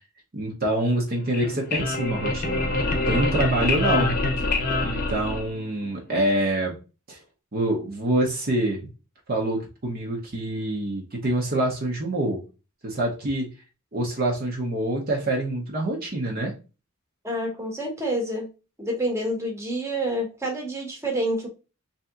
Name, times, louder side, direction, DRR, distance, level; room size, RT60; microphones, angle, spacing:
voice 1, 0.3-2.7 3.1-4.1 4.8-6.8 7.1-7.2 7.5-8.8 9.3-12.4 12.8-13.5 13.9-16.5, right 1 dB, 45° right, -1 dB, 0.8 m, -26 dB
sound 1, 1.2-5.9, left 2 dB, 40° left, 0.8 m, -25 dB
voice 2, 17.2-18.5 18.8-21.5, right 1 dB, 10° right, 0 dB, 1.0 m, -28 dB
3.3 x 2.8 x 3.6 m, 0.31 s
head